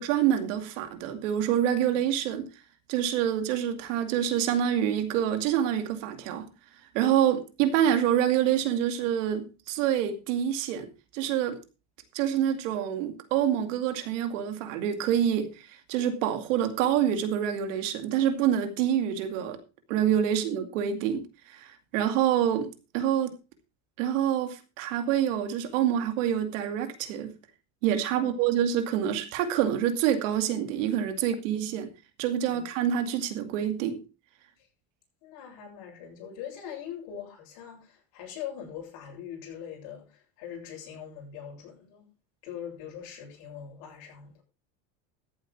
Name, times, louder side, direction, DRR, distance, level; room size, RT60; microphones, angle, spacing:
voice 1, 0.0-2.5 2.9-6.5 6.9-10.9 11.1-11.6 12.1-19.6 19.9-23.3 24.0-27.3 27.8-31.9 32.2-34.0, right 10 dB, 85° right, 2.4 m, -27 dB
voice 2, 35.2-42.1 42.4-44.4, left 9 dB, 65° left, 7.9 m, -42 dB
14.0 x 8.1 x 4.4 m
cardioid pair, 135°, 37 cm